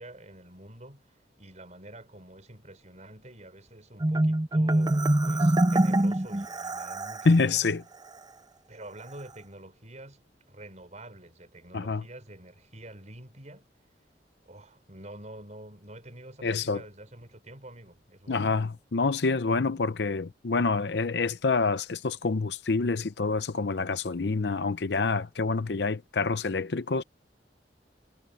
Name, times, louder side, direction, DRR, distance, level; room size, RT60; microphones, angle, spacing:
voice 1, 0.0-7.7 8.7-13.7 14.4-18.6, right 1 dB, 40° right, 5.5 m, -47 dB
Marimba xylophone, 4.0-7.4, right 1 dB, 25° right, 0.6 m, -24 dB
voice 2, 7.3-7.8 11.7-12.0 16.4-16.8 18.3-27.0, left 4 dB, 70° left, 0.7 m, -27 dB
head